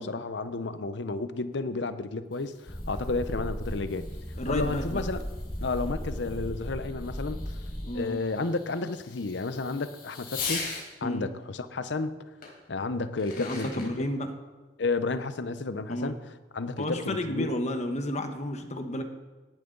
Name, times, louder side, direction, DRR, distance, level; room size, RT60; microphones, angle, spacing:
voice 1, 0.0-4.1 4.5-5.2 5.6-7.5 7.9-10.7 11.0-12.2 12.7-13.9 14.8-16.2 16.5-17.5, left 3 dB, 80° left, 12 dB, 0.8 m, -32 dB
Fireworks, 2.1-10.9 12.4-12.5 13.0-13.9, left 5 dB, 60° left, 4.4 m, -42 dB
sound 1, 2.7-7.9, equal, 15° left, 1.2 m, -36 dB
voice 2, 4.4-5.0 7.8-8.2 11.0-11.3 13.4-14.3 15.9-16.1 16.8-19.0, left 1 dB, 40° left, 6 dB, 1.1 m, -32 dB
17.5 x 10.5 x 3.9 m, 1.3 s
head